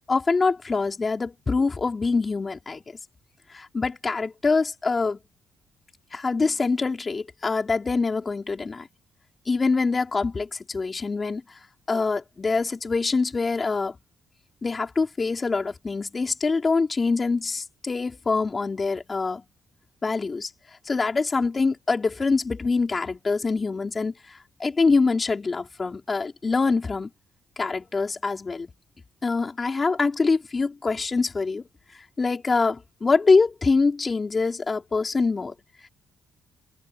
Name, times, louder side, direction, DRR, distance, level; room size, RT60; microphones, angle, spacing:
voice 1, 0.1-2.8 3.5-5.2 6.1-8.9 9.5-11.4 11.9-14.0 14.6-19.4 20.0-20.5 20.8-27.1 27.6-28.7 29.2-31.6 32.2-35.5, left 4 dB, 30° left, 4.3 m, -24 dB
cardioid pair, 90°, 0 cm